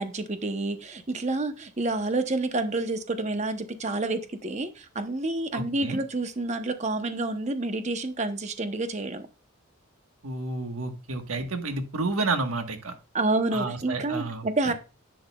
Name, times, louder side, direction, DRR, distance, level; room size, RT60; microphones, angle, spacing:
voice 1, 0.0-9.3 13.1-14.7, right 2 dB, 35° right, 9 dB, 0.8 m, -29 dB
voice 2, 5.5-6.0 10.2-12.9 13.5-14.7, right 3 dB, 90° right, 6 dB, 1.3 m, -30 dB
10.5 x 6.4 x 2.3 m, 0.32 s
head